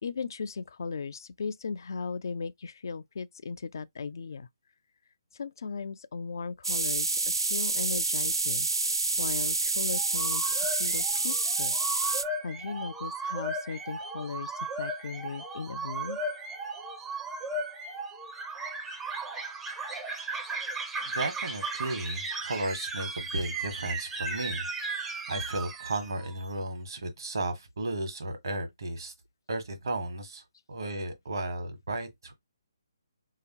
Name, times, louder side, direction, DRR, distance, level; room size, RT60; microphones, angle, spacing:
voice 1, 0.0-4.5 5.3-8.7 9.2-11.8 12.0-16.2, left 5 dB, 55° left, 0.3 m, -37 dB
sound 1, 6.6-12.2, right 3 dB, 80° right, 0.4 m, -28 dB
sound 2, 9.9-26.4, right 3 dB, 10° right, 0.5 m, -36 dB
voice 2, 21.0-29.1 29.5-32.3, right 2 dB, 65° right, 1.2 m, -34 dB
3.3 x 2.8 x 2.8 m
figure-of-eight pair, 145°, 2 cm